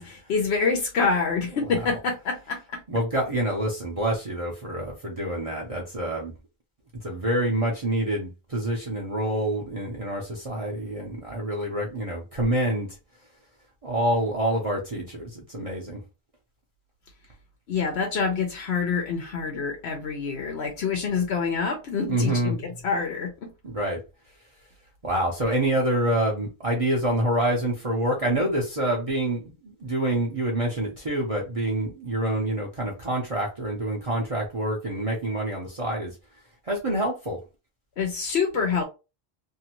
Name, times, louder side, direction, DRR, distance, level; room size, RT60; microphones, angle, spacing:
voice 1, 0.0-2.8 17.7-22.6 22.8-23.5 38.0-38.8, left 5 dB, 85° left, 1.0 m, -26 dB
voice 2, 2.9-6.3 7.0-13.0 13.8-16.0 22.1-22.5 23.6-24.0 25.0-36.1 36.7-37.4, right 1 dB, 40° right, 0.7 m, -27 dB
2.7 x 2.5 x 2.9 m
omnidirectional pair, 1.1 m